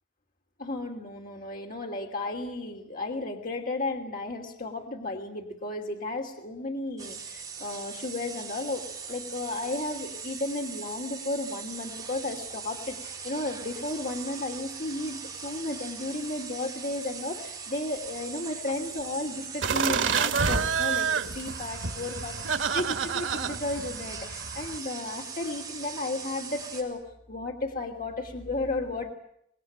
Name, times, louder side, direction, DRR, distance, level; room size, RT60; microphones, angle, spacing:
voice 1, 0.6-27.0 27.3-29.1, left 2 dB, 50° left, 2 dB, 2.8 m, -34 dB
sound 1, 7.0-26.8, right 6 dB, 20° right, 7.6 m, -40 dB
sound 2, 19.6-24.8, right 6 dB, 90° right, 1.5 m, -29 dB
26.5 x 20.5 x 8.9 m, 0.73 s
head